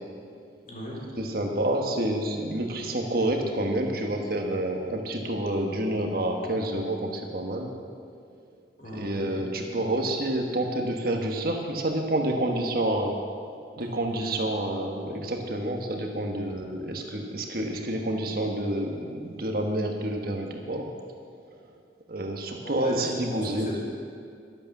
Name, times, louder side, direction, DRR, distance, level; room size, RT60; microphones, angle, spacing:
voice 1, 0.6-1.0 8.8-9.4 13.9-14.4 16.5-16.6 22.6-23.8, equal, 45° left, -3 dB, 4.0 m, -38 dB
voice 2, 1.2-7.7 8.9-13.2 13.8-20.9 22.1-23.7, right 1 dB, 55° right, 2 dB, 1.5 m, -28 dB
12.0 x 11.5 x 7.2 m, 2.2 s
head